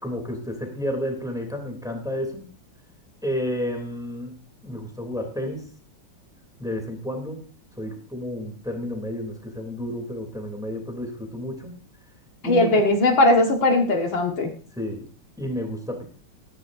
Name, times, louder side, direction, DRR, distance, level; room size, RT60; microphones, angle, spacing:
voice 1, 0.0-2.5 3.2-4.4 4.6-5.7 6.6-7.5 7.8-11.7 12.4-12.8 14.8-15.1 15.4-16.0, equal, ahead, 3 dB, 2.9 m, -31 dB
voice 2, 12.4-14.5, left 2 dB, 65° left, 3 dB, 2.4 m, -19 dB
15.0 x 14.5 x 2.7 m, 0.38 s
omnidirectional pair, 2.3 m